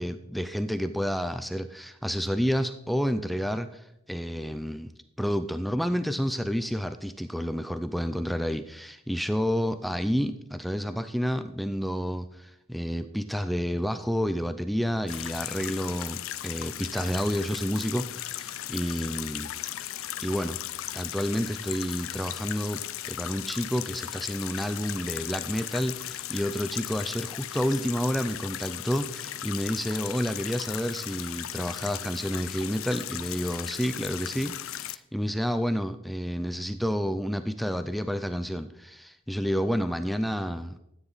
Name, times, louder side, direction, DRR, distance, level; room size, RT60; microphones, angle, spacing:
voice 1, 0.0-4.9 5.2-19.5 20.2-20.6 20.9-40.8, equal, ahead, 10 dB, 0.4 m, -30 dB
sound 1, 15.1-35.0, left 13 dB, 75° left, 0.5 m, -37 dB
13.0 x 9.1 x 4.0 m, 0.80 s
head